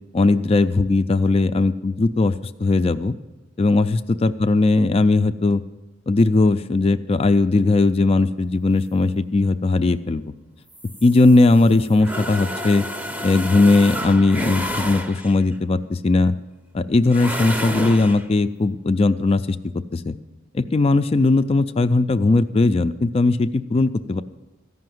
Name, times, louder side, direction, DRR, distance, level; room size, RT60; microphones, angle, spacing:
voice 1, 0.1-3.1 3.6-5.6 6.1-10.3 11.0-12.9 13.2-16.3 16.7-19.6 19.9-20.1 20.5-24.2, left 3 dB, 30° left, 10 dB, 0.3 m, -18 dB
sound 1, 10.7-15.5 17.1-18.3, equal, 10° right, 0.7 m, -30 dB
14.0 x 5.7 x 7.7 m, 1.1 s
head